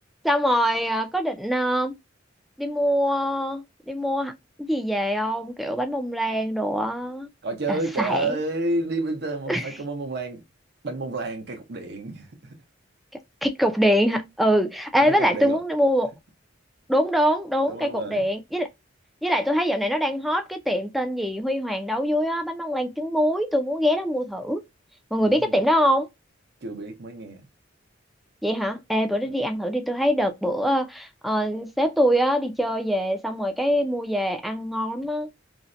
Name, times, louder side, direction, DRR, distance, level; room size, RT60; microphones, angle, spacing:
voice 1, 0.2-2.0 2.6-4.3 4.6-7.3 7.7-8.3 9.5-9.6 13.4-16.1 16.9-18.7 19.2-24.6 25.1-26.1 28.4-35.3, equal, ahead, 0.3 m, -24 dB
voice 2, 7.4-10.4 10.8-12.6 15.0-15.6 17.7-18.3 25.2-25.6 26.6-27.4 29.2-29.4, right 2 dB, 55° right, 0.7 m, -30 dB
2.6 x 2.1 x 2.4 m
head